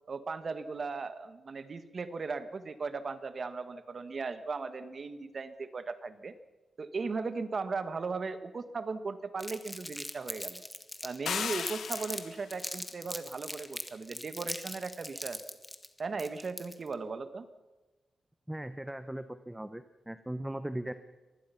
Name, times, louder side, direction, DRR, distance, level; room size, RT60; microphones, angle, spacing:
voice 1, 0.1-6.3 6.8-10.6 11.0-15.4 16.0-17.5, right 4 dB, 45° right, 11 dB, 1.5 m, -37 dB
Crumpling crinkling, 9.4-12.2 12.5-16.9, left 1 dB, 10° left, 1.7 m, -40 dB
sound 1, 11.3-12.5, left 7 dB, 80° left, 1.1 m, -35 dB
voice 2, 18.5-20.9, right 1 dB, 10° right, 11 dB, 0.9 m, -38 dB
24.5 x 20.0 x 5.8 m, 1.2 s
wide cardioid pair, 120°, 0 cm